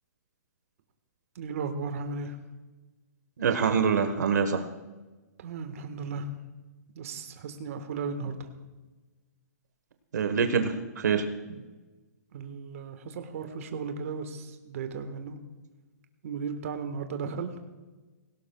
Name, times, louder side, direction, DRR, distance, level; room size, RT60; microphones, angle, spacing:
voice 1, 1.3-2.4 5.4-6.3 6.9-8.5 12.3-15.4 16.2-17.5, right 5 dB, 55° right, 7 dB, 1.4 m, -35 dB
voice 2, 3.4-4.6 10.1-11.6, right 6 dB, 75° right, 7 dB, 1.2 m, -26 dB
17.5 x 17.5 x 2.3 m, 1.2 s
hypercardioid pair, 160°, 9 cm